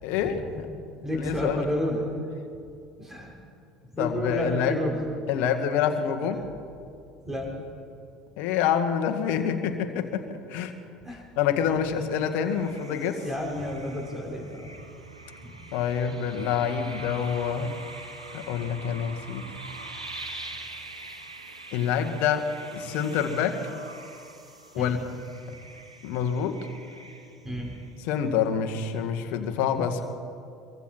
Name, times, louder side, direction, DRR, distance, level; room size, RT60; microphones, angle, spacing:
voice 1, 0.0-0.7 1.1-1.7 4.0-4.8 5.3-6.4 8.4-10.7 11.4-13.2 15.7-17.8 18.3-19.5 21.7-23.6 24.7-25.1 26.0-26.6 28.0-30.1, left 8 dB, 55° left, 6 dB, 2.0 m, -27 dB
voice 2, 1.0-2.0 3.0-3.3 3.9-5.0 7.2-7.5 11.0-11.2 13.2-14.7 15.4-15.6 19.5-19.6 24.7-25.0 27.4-27.8, equal, 10° right, -1 dB, 5.7 m, -31 dB
sound 1, 12.0-28.3, right 2 dB, 85° right, 1.7 m, -44 dB
25.0 x 23.5 x 4.6 m, 2.4 s
figure-of-eight pair, 65°, 3 cm